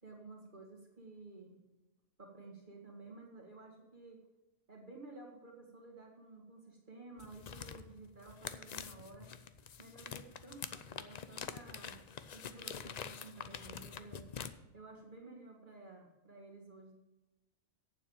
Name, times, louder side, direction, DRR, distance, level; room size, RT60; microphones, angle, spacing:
voice 1, 0.0-1.6 2.2-4.2 4.7-9.3 9.8-12.0 12.3-14.3 14.7-16.9, right 3 dB, 35° right, -1 dB, 2.0 m, -53 dB
sound 1, 7.2-14.5, left 7 dB, 75° left, 0.3 m, -46 dB
8.6 x 7.3 x 6.9 m, 1.0 s
omnidirectional pair, 1.4 m